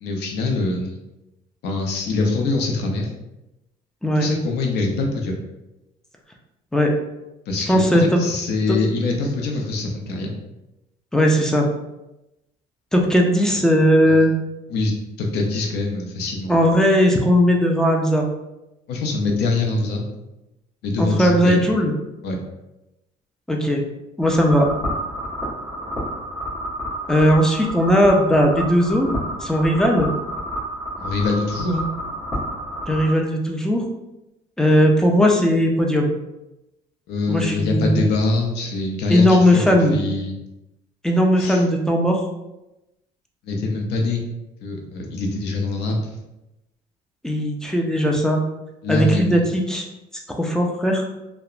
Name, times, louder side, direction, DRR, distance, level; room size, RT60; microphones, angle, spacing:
voice 1, 0.0-1.0 1.6-3.1 4.2-5.4 7.5-10.3 14.1-14.2 14.7-14.9 15.2-16.5 18.9-20.1 20.8-21.7 22.2-22.4 31.0-31.9 37.1-40.3 41.4-41.6 43.4-44.2 44.6-46.1 48.8-49.4, left 2 dB, 80° left, 1 dB, 0.6 m, -24 dB
voice 2, 7.7-8.2 11.1-11.7 12.9-14.3 16.5-18.3 21.0-21.9 23.5-23.8 24.2-24.7 27.1-29.1 29.4-30.1 32.9-33.8 34.6-36.1 37.3-38.0 39.1-40.0 41.0-42.2 47.2-48.4 48.9-49.9 50.1-51.0, equal, 5° left, 1 dB, 0.4 m, -18 dB
sound 1, 24.2-33.1, equal, 25° left, 1.1 m, -29 dB
2.8 x 2.1 x 2.4 m, 0.95 s
cardioid pair, 110°, 17 cm